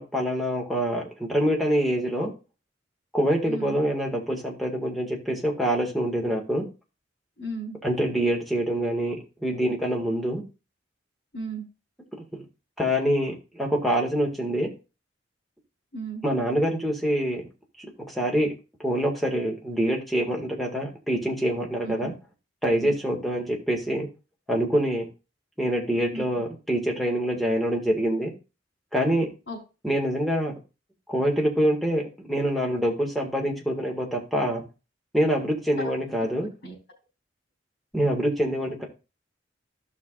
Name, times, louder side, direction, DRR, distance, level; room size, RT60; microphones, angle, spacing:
voice 1, 0.0-2.3 3.1-6.7 7.8-10.4 12.3-12.5 12.8-14.7 16.2-17.4 18.1-18.5 18.8-22.1 22.6-24.1 24.5-25.1 25.6-28.3 28.9-29.3 29.8-30.5 31.1-34.6 35.1-36.5 37.9-38.9, equal, ahead, 0 dB, 2.0 m, -25 dB
voice 2, 7.4-7.8 11.3-11.7 15.9-16.2 21.8-22.1 22.8-22.9 26.1-26.2 29.5-29.6 35.8-35.9 36.6-36.7, right 2 dB, 80° left, -4 dB, 4.2 m, -34 dB
14.5 x 5.9 x 2.5 m, 0.30 s
head